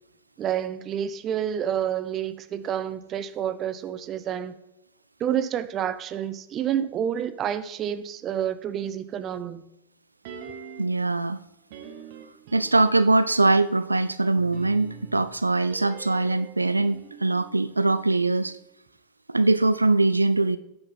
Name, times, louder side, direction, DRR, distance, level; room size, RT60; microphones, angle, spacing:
voice 1, 0.4-4.6 5.2-9.7, right 9 dB, 30° right, 0.6 m, -29 dB
sound 1, 10.2-11.1 11.7-13.3 14.4-18.6 18.9-19.0, right 6 dB, 50° right, 1.1 m, -45 dB
voice 2, 10.8-11.4 12.5-18.6 19.3-20.6, right 2 dB, 80° right, 0.3 m, -22 dB
9.4 x 7.9 x 4.2 m
figure-of-eight pair, 90°, 0 cm